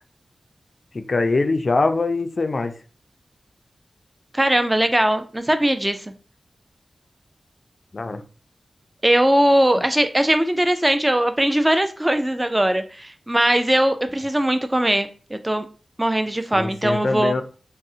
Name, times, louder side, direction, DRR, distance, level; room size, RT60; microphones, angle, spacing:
voice 1, 0.9-2.7 7.9-8.2 16.5-17.4, left 3 dB, 55° left, 0.4 m, -22 dB
voice 2, 4.3-6.1 9.0-15.7 16.0-17.3, right 1 dB, 15° right, 0.4 m, -20 dB
3.7 x 2.0 x 2.6 m
cardioid pair, 55°, 0 cm